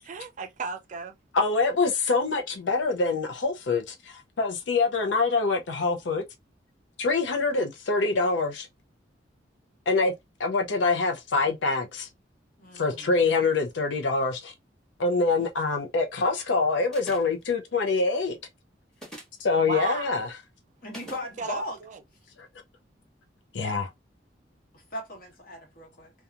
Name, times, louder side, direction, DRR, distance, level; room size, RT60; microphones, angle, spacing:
voice 1, 0.0-1.2 19.7-20.3 21.4-22.0, right 5 dB, 45° right, 0.4 m, -35 dB
voice 2, 1.3-6.2 7.0-8.7 9.9-10.1 10.4-12.1 12.7-14.5 15.0-18.4 19.4-20.3 23.5-23.9, left 3 dB, 85° left, 0.5 m, -25 dB
voice 3, 12.6-13.1 20.8-21.8 24.7-26.1, left 1 dB, 55° left, 1.3 m, -38 dB
sound 1, 16.9-17.4 18.9-19.4 20.9-21.3, right 1 dB, 5° left, 1.1 m, -43 dB
2.8 x 2.3 x 2.4 m
head